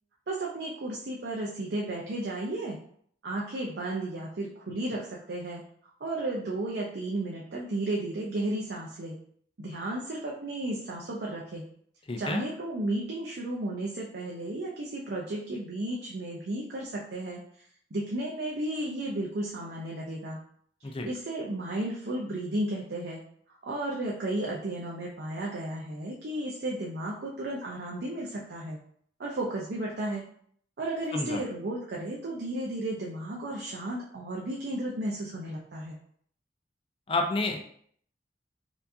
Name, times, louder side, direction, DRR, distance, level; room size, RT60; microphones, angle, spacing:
voice 1, 0.3-2.8 3.2-5.6 6.0-9.2 9.6-11.6 12.2-17.4 17.9-20.4 20.8-23.2 23.6-28.8 29.2-30.3 30.8-36.0, right 1 dB, 65° right, -3 dB, 0.6 m, -33 dB
voice 2, 12.1-12.4 20.8-21.1 31.1-31.4 37.1-37.6, left 2 dB, 30° left, 3 dB, 0.5 m, -29 dB
4.4 x 2.6 x 2.7 m, 0.63 s
head